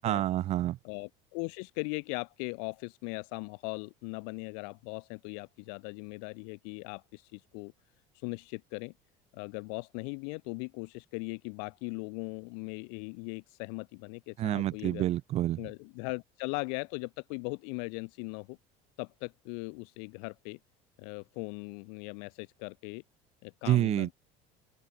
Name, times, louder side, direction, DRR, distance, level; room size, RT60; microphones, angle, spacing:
voice 1, 0.0-0.8 14.4-15.6 23.7-24.1, right 13 dB, 40° right, 1.6 m, -28 dB
voice 2, 0.8-7.7 8.2-8.9 9.3-15.0 15.6-18.6 19.0-20.6 21.0-23.0 23.4-24.1, left 40 dB or more, 70° left, 6.7 m, -39 dB
open air
cardioid pair, 165°, 17 cm